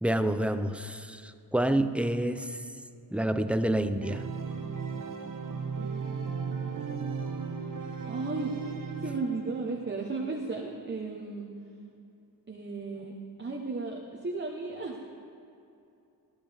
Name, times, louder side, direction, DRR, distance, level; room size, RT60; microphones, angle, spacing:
voice 1, 0.0-2.6 3.1-4.3, right 1 dB, 5° right, 10 dB, 0.5 m, -28 dB
Organ, 4.0-9.7, right 5 dB, 55° right, 0.9 m, -36 dB
voice 2, 8.0-8.6 9.0-11.5 12.5-13.1 13.4-15.1, right 3 dB, 30° right, -2 dB, 1.1 m, -34 dB
15.5 x 12.5 x 3.5 m, 2.7 s
wide cardioid pair, 105°, 39 cm